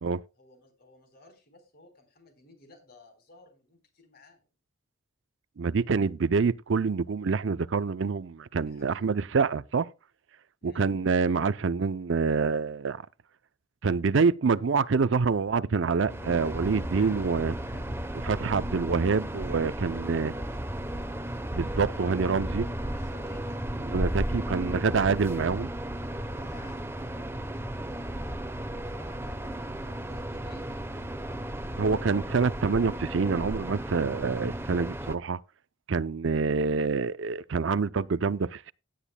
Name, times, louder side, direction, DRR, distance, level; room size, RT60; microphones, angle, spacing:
voice 1, 0.4-4.5 8.7-9.1 10.6-10.9 16.4-17.9 19.7-20.8 22.7-23.5 26.1-27.5 28.8-31.1, left 2 dB, 45° left, 4.1 m, -56 dB
voice 2, 5.6-9.9 10.6-13.0 13.8-17.5 18.2-20.3 21.5-22.7 23.9-25.7 31.8-35.4 35.9-38.7, right 5 dB, 60° right, 0.5 m, -26 dB
sound 1, 14.9-22.6, right 1 dB, 70° left, 2.1 m, -53 dB
sound 2, 16.1-35.2, right 1 dB, 10° right, 0.8 m, -34 dB
17.0 x 10.0 x 2.2 m
head